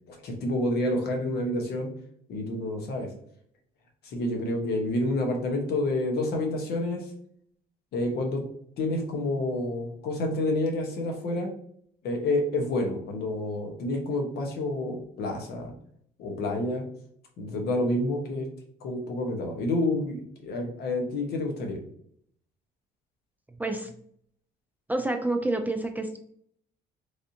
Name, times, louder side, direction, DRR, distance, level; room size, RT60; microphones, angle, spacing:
voice 1, 0.1-1.9 2.3-3.1 4.0-7.1 7.9-8.4 8.8-11.5 12.0-15.7 16.2-16.8 17.4-18.4 18.8-21.8, left 1 dB, 70° left, 2 dB, 1.0 m, -29 dB
voice 2, 23.6-23.9 24.9-26.2, right 2 dB, 10° right, 5 dB, 0.3 m, -28 dB
3.3 x 2.7 x 2.6 m, 0.64 s
cardioid pair, 110°, 17 cm